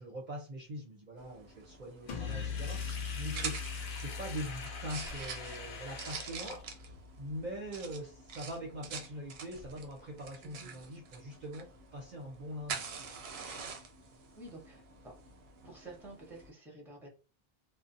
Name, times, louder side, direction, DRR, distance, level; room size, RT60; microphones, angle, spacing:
voice 1, 0.0-3.6 3.9-12.9, equal, 50° right, 0 dB, 0.7 m, -43 dB
sound 1, 1.2-16.5, right 5 dB, 85° right, 0.8 m, -46 dB
Sink (filling or washing), 2.1-7.0, left 4 dB, 75° left, 0.9 m, -45 dB
sound 2, 2.1-7.7, left 6 dB, 55° left, 0.4 m, -42 dB
voice 2, 3.2-3.6 10.4-10.8 14.3-15.1 15.6-17.1, right 2 dB, ahead, -1 dB, 0.8 m, -50 dB
2.5 x 2.0 x 2.5 m, 0.33 s
omnidirectional pair, 1.0 m